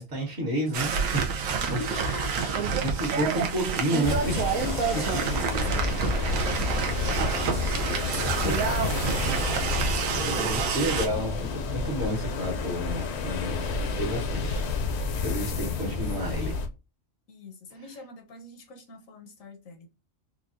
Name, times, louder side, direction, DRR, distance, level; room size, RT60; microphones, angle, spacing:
voice 1, 0.0-1.8 2.8-4.4 8.4-8.5 9.4-14.6 15.2-16.6, equal, 55° right, 1.6 m, -31 dB
sound 1, 0.7-11.1, right 6 dB, 90° right, 1.1 m, -28 dB
voice 2, 1.6-2.8 3.5-3.7 4.8-8.0 15.4-16.0 17.3-19.9, left 2 dB, 85° left, 1.3 m, -42 dB
sound 2, 4.0-16.7, left 4 dB, 65° left, 0.8 m, -30 dB
4.5 x 2.3 x 2.5 m
omnidirectional pair, 1.3 m